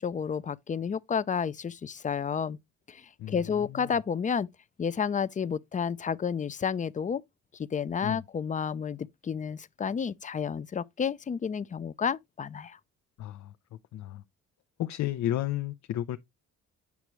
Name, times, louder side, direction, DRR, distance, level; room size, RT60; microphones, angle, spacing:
voice 1, 0.0-2.6 2.9-4.5 4.8-7.2 7.5-12.8, left 6 dB, 25° left, 0.5 m, -31 dB
voice 2, 13.2-13.5 13.9-14.2 14.8-16.2, left 13 dB, 65° left, 0.6 m, -32 dB
8.2 x 6.0 x 3.1 m
cardioid pair, 90°, 30 cm